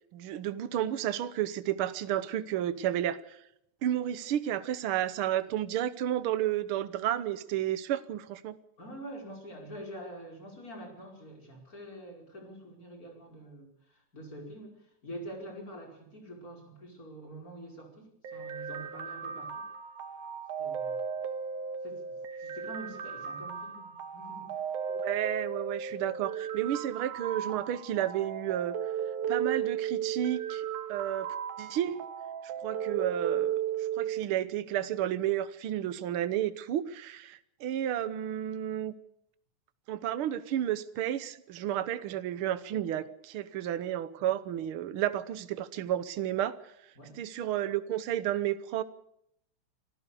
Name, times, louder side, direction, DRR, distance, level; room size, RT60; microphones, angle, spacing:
voice 1, 0.1-3.4 3.8-8.6 24.9-28.8 29.3-32.0 32.6-38.9 39.9-46.7 47.1-48.8, right 11 dB, 65° right, 14 dB, 1.4 m, -32 dB
voice 2, 8.8-19.6 20.6-21.0 21.8-22.0 22.4-24.6 47.0-47.2, right 1 dB, 25° left, 1 dB, 5.6 m, -46 dB
sound 1, 18.2-34.2, right 8 dB, 85° right, 2.8 m, -35 dB
26.0 x 15.0 x 6.9 m, 0.74 s
omnidirectional pair, 3.5 m